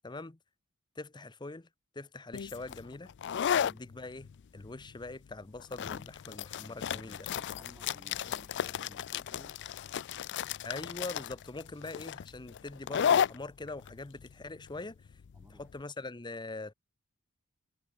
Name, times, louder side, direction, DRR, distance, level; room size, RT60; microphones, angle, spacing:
voice 1, 0.0-0.4 1.0-1.7 1.9-3.1 3.6-7.3 10.6-15.0 15.5-16.7, left 2 dB, 20° left, 0.8 m, -43 dB
sound 1, 2.3-15.7, left 8 dB, 55° left, 0.4 m, -34 dB
voice 2, 3.5-3.8 6.6-9.6 15.3-15.9, equal, 10° right, 7.8 m, -58 dB
head